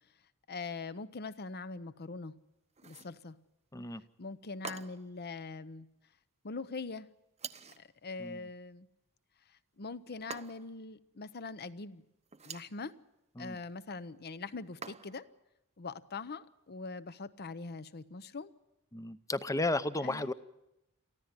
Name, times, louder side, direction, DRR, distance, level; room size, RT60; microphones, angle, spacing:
voice 1, 0.5-2.3 2.8-3.4 4.2-5.9 6.4-7.1 7.8-8.9 9.8-12.0 12.4-12.9 13.4-15.2 15.8-18.5 20.0-20.3, left 4 dB, 45° left, 0.8 m, -42 dB
sound 1, 2.8-3.2 4.6-5.2 7.4-7.9 10.3-10.8 12.3-12.8 14.8-15.3, right 6 dB, 30° right, 0.8 m, -46 dB
voice 2, 18.9-20.3, left 2 dB, 15° left, 0.7 m, -33 dB
23.5 x 14.5 x 9.6 m
head